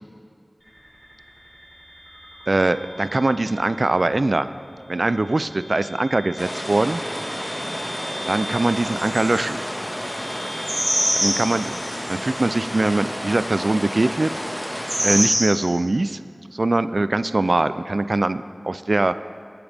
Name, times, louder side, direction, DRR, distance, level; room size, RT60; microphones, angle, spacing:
sound 1, 0.6-13.6, equal, 15° right, 3.5 m, -41 dB
voice 1, 2.5-4.5 4.9-7.0 8.3-9.6 11.1-14.4 15.0-16.2 16.5-19.1, right 2 dB, 70° right, 13 dB, 0.3 m, -22 dB
sound 2, 6.4-15.2, equal, 15° left, 1.7 m, -31 dB
sound 3, 8.8-9.5 10.7-12.2 14.7-15.5, equal, 35° right, 3.7 m, -23 dB
20.0 x 8.9 x 3.5 m, 2.2 s
wide cardioid pair, 40°, 0 cm